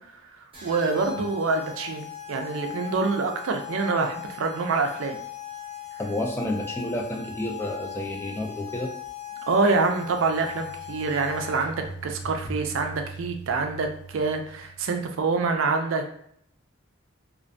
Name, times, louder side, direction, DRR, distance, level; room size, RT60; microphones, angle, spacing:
sound 1, 0.5-11.9, left 10 dB, 25° right, 0.7 m, -39 dB
voice 1, 0.6-5.2 9.5-13.9 14.1-16.1, right 4 dB, 75° right, 5 dB, 0.4 m, -26 dB
voice 2, 6.0-8.9, left 1 dB, 10° left, 1 dB, 0.3 m, -30 dB
sound 2, 9.8-15.4, right 3 dB, 80° left, 0.8 m, -42 dB
2.4 x 2.1 x 2.5 m, 0.68 s
head